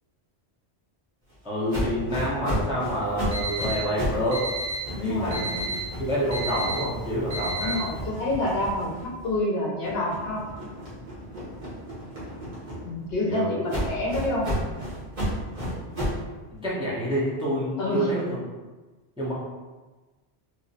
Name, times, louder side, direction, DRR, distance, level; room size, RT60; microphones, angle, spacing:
voice 1, 1.4-4.5 5.0-7.8 13.3-13.7 16.6-18.4 19.2-19.3, equal, 5° right, -8 dB, 0.7 m, -28 dB
sound 1, 1.7-4.3 4.6-9.4 9.8-13.1 13.7-16.3, equal, 40° right, 1.2 m, -33 dB
Alarm, 3.1-8.1, right 2 dB, 75° right, 1.2 m, -33 dB
voice 2, 4.9-5.6 7.6-10.5 12.8-14.5 17.8-18.2, left 1 dB, 60° left, -4 dB, 0.9 m, -28 dB
3.1 x 3.0 x 2.7 m, 1.2 s
omnidirectional pair, 1.2 m